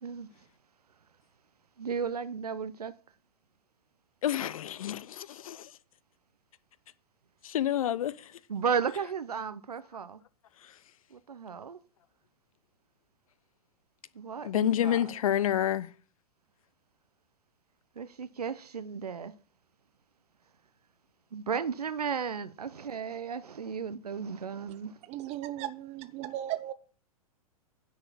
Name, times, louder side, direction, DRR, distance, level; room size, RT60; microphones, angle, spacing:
voice 1, 1.8-3.0 8.5-10.2 11.1-11.8 14.2-15.0 18.0-19.3 21.3-25.0, right 6 dB, 85° right, 0.6 m, -34 dB
voice 2, 4.2-5.7 7.4-8.3 10.6-10.7 14.4-15.9, left 11 dB, 65° left, 0.7 m, -29 dB
voice 3, 25.0-26.7, right 13 dB, 35° right, 1.1 m, -36 dB
9.9 x 4.8 x 7.4 m
figure-of-eight pair, 105°, 19 cm